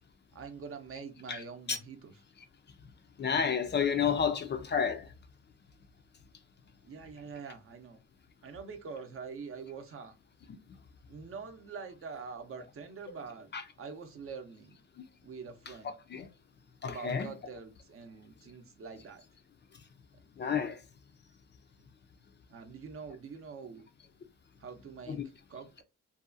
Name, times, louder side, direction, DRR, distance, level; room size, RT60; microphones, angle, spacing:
voice 1, 0.3-2.1 6.8-8.0 8.4-10.1 11.1-13.5 13.8-14.8 15.2-15.9 16.8-19.2 22.5-23.9 24.6-25.2 25.5-25.8, right 5 dB, 45° right, 0.6 m, -45 dB
voice 2, 3.2-5.1 13.5-13.6 16.1-16.3 16.8-17.3 20.4-20.8 25.1-25.2, left 7 dB, 35° left, 0.4 m, -30 dB
2.7 x 2.3 x 2.4 m
cardioid pair, 90°, 30 cm